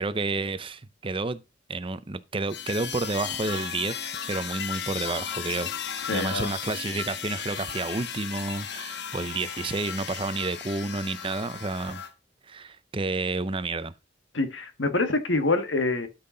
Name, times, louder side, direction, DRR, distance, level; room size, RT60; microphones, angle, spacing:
voice 1, 0.0-1.4 1.7-4.0 4.3-5.7 6.1-12.0 12.5-13.9, right 3 dB, 30° right, 0.6 m, -30 dB
sound 1, 2.5-12.1, left 7 dB, 60° left, 1.1 m, -35 dB
voice 2, 6.1-6.5 14.3-16.1, left 2 dB, 80° left, 1.8 m, -26 dB
12.5 x 5.8 x 3.9 m
head